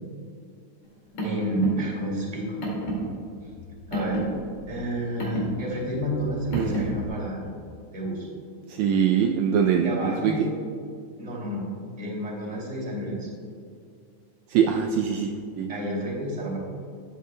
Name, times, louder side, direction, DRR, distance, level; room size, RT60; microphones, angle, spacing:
Car, 0.8-7.1, right 1 dB, 60° left, 3.5 m, -32 dB
voice 1, 1.2-2.6 3.9-4.2 4.7-7.5 7.9-8.3 9.8-10.6 11.2-11.6 12.0-13.3 15.7-16.6, right 1 dB, 15° right, -5 dB, 2.2 m, -30 dB
voice 2, 6.5-6.8 8.7-10.3 14.5-15.7, right 7 dB, 80° right, 3 dB, 1.8 m, -23 dB
13.5 x 8.4 x 2.2 m, 2.3 s
omnidirectional pair, 3.5 m